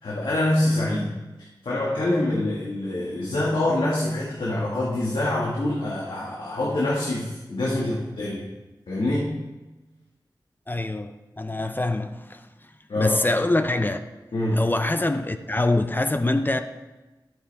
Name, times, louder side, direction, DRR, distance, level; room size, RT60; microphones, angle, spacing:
voice 1, 0.0-1.1 1.6-8.5 8.9-9.3 12.9-13.2 14.3-14.7, left 1 dB, 85° left, -5 dB, 1.8 m, -25 dB
voice 2, 10.7-12.4 13.0-14.0 14.5-16.6, left 2 dB, 25° left, 8 dB, 0.6 m, -24 dB
12.0 x 9.5 x 3.5 m, 1.1 s
wide cardioid pair, 65°, 8 cm